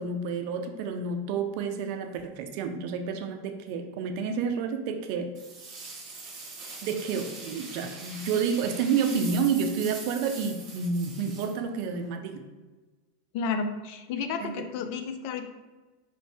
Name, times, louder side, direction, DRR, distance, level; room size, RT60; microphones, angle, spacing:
voice 1, 0.0-5.3 6.8-12.5 14.4-14.6, right 5 dB, 60° right, 6 dB, 0.4 m, -29 dB
sound 1, 5.3-12.1, right 3 dB, 45° right, 0.9 m, -42 dB
voice 2, 13.3-15.5, left 5 dB, 55° left, 7 dB, 0.4 m, -31 dB
3.2 x 2.6 x 3.3 m, 1.2 s
hypercardioid pair, 95°, 0 cm